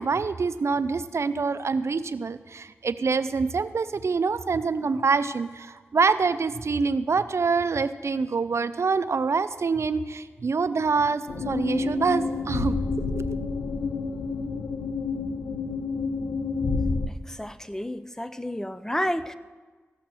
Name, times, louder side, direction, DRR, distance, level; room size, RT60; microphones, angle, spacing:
voice 1, 0.0-12.8 13.1-13.4, right 4 dB, 65° right, 13 dB, 0.5 m, -26 dB
sound 1, 11.3-17.1, left 4 dB, 75° left, 0.6 m, -29 dB
voice 2, 17.3-19.3, equal, 10° left, 13 dB, 0.6 m, -30 dB
15.0 x 5.9 x 6.1 m, 1.4 s
cardioid pair, 40°, 5 cm